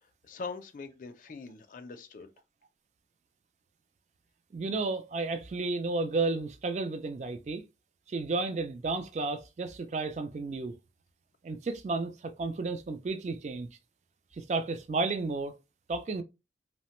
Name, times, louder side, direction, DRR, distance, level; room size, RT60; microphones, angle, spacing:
voice 1, 0.0-2.3, left 4 dB, 45° left, 0.4 m, -42 dB
voice 2, 4.5-7.6 8.1-10.8 11.4-13.7 14.4-15.6 15.9-16.2, right 3 dB, 40° right, 0.3 m, -32 dB
3.0 x 2.1 x 2.9 m
head